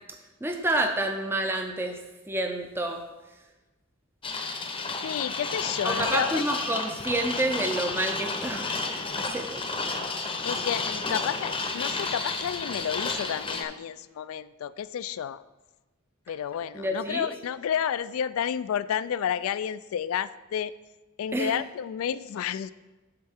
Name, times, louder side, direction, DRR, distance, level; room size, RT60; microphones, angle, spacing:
voice 1, 0.4-3.0 5.8-8.8 9.2-9.6 16.7-17.3 21.3-21.5, right 1 dB, 10° right, 4 dB, 0.5 m, -29 dB
sound 1, 4.2-13.6, left 3 dB, 25° left, 0.7 m, -32 dB
voice 2, 5.0-6.4 10.4-15.4 16.3-20.7 21.2-22.7, left 8 dB, 70° left, 17 dB, 0.3 m, -31 dB
12.0 x 4.3 x 3.5 m, 1.1 s
head